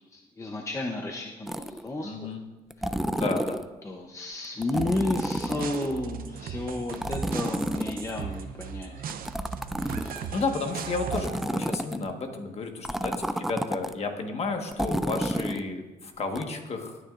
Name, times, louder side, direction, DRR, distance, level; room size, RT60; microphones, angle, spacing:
voice 1, 0.1-2.4 2.8-3.0 3.8-8.9 9.8-10.3, left 2 dB, 20° left, 1 dB, 0.7 m, -33 dB
sound 1, 1.5-1.9 2.7-3.7 4.6-6.0 6.9-8.4 9.1-10.4 11.1-12.1 12.8-13.9 14.7-15.6 16.4-16.5, right 1 dB, ahead, 0.3 m, -30 dB
voice 2, 2.0-2.4 3.1-3.6 10.1-17.0, left 3 dB, 40° left, 4 dB, 1.4 m, -32 dB
sound 2, 4.8-11.5, right 7 dB, 65° right, 0.7 m, -37 dB
18.5 x 9.7 x 2.5 m, 1.2 s
cardioid pair, 135°, 16 cm